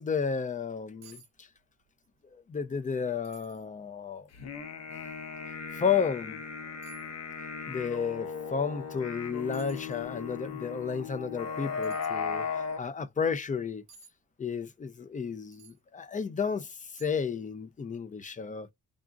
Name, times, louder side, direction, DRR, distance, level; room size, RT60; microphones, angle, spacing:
voice 1, 0.0-1.5 2.3-4.3 5.7-6.4 7.7-13.8 14.4-18.7, left 6 dB, 25° left, 0.5 m, -32 dB
sound 1, 1.0-1.3 1.6-2.1 2.5-2.6 3.2-3.7 4.3-4.4 5.9-6.0 6.8-7.1 9.0-9.1 9.5-10.0 11.8-12.1 13.9-14.1 15.5-15.8 16.4-16.5 16.9-17.3 17.6-17.8, right 6 dB, 60° right, 1.0 m, -55 dB
sound 2, 4.3-12.8, left 5 dB, 60° left, 0.8 m, -37 dB
3.6 x 2.5 x 3.8 m
cardioid pair, 90°, 30 cm